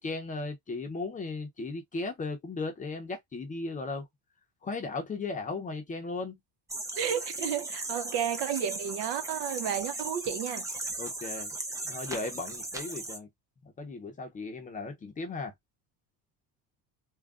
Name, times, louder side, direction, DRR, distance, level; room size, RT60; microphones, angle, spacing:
voice 1, 0.0-4.1 4.6-6.4 11.0-11.5 11.8-13.3 13.8-15.5, left 3 dB, 20° left, 0.6 m, -36 dB
sound 1, 6.7-13.2, right 2 dB, 10° right, 0.3 m, -37 dB
voice 2, 7.0-10.7, right 9 dB, 70° right, 0.8 m, -32 dB
3.6 x 2.2 x 3.6 m
cardioid pair, 170°, 41 cm